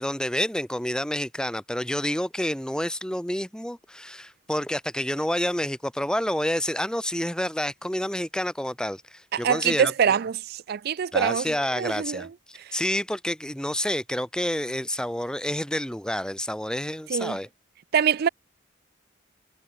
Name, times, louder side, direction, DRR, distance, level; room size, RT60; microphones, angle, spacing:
voice 1, 0.0-10.2 11.1-17.5, left 1 dB, 5° left, 1.6 m, -29 dB
voice 2, 9.3-12.3 17.1-17.4 17.9-18.3, right 7 dB, 55° right, 0.4 m, -24 dB
head